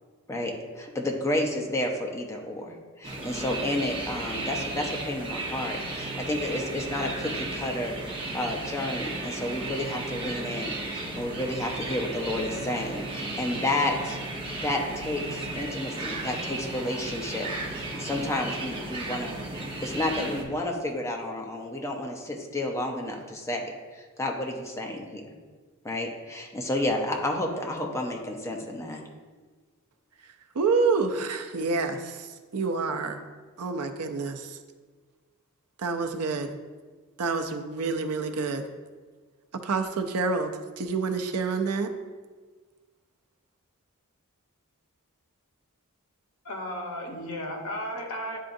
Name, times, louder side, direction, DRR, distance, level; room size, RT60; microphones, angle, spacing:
voice 1, 0.3-14.2 14.6-19.4 19.8-25.2 25.8-29.0, left 1 dB, 15° left, 1 dB, 0.7 m, -31 dB
sound 1, 3.0-20.4, right 2 dB, 25° right, 1.0 m, -34 dB
voice 2, 30.5-33.2 33.6-34.6 35.8-36.5 37.2-38.6 39.6-41.9, right 4 dB, 85° right, 6 dB, 0.6 m, -28 dB
voice 3, 46.4-48.4, equal, 80° left, 2 dB, 1.0 m, -34 dB
10.0 x 3.7 x 2.6 m, 1.4 s
head